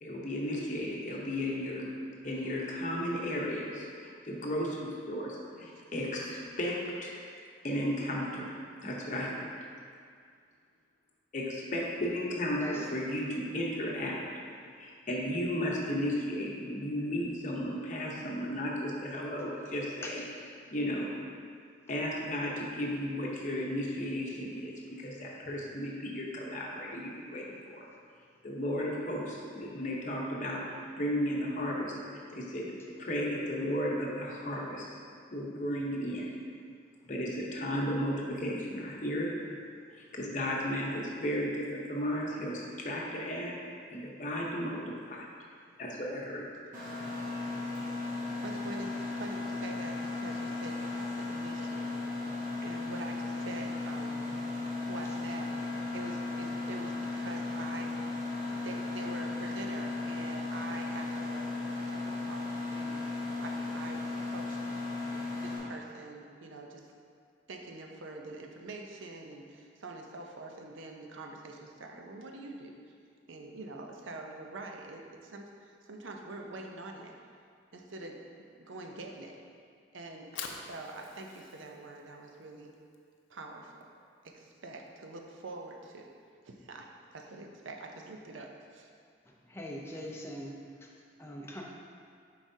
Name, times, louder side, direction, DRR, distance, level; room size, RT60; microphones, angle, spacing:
voice 1, 0.0-1.8 2.2-7.2 7.6-8.5 8.8-9.4 11.3-14.2 14.8-20.2 20.7-21.1 21.9-27.8 28.4-30.6 31.0-32.7 33.0-35.0 35.3-36.4 37.1-39.3 40.1-43.6 43.9-45.2 45.8-46.5, equal, 40° left, -3 dB, 0.8 m, -34 dB
voice 2, 5.5-5.8 12.7-12.9 46.8-46.9 48.0-54.3 54.8-58.1 58.6-64.8 65.3-66.9 67.5-72.9 73.3-77.1 77.7-79.4 79.9-82.8 83.3-83.9 84.2-86.1 86.4-88.9, right 2 dB, 85° right, 2 dB, 0.6 m, -45 dB
Mechanisms, 46.7-65.6, left 3 dB, 40° right, 1.3 m, -36 dB
Fire, 80.1-86.3, left 5 dB, 85° left, 0.5 m, -49 dB
voice 3, 89.5-90.5 91.2-91.6, left 1 dB, 15° left, -2 dB, 0.5 m, -41 dB
7.1 x 4.8 x 2.7 m, 2.2 s
head